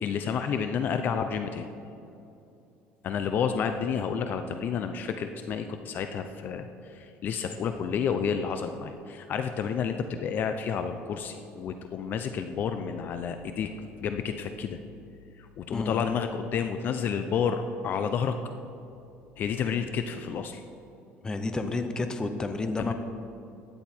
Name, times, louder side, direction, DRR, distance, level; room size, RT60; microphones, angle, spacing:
voice 1, 0.0-1.7 3.0-13.7 14.0-14.8 15.4-18.4 19.4-20.6 22.8-22.9, left 7 dB, 45° left, 8 dB, 0.7 m, -30 dB
voice 2, 15.7-16.0 21.2-22.9, left 3 dB, 15° left, 7 dB, 0.9 m, -30 dB
15.5 x 10.0 x 4.5 m, 2.7 s
cardioid pair, 140°, 4 cm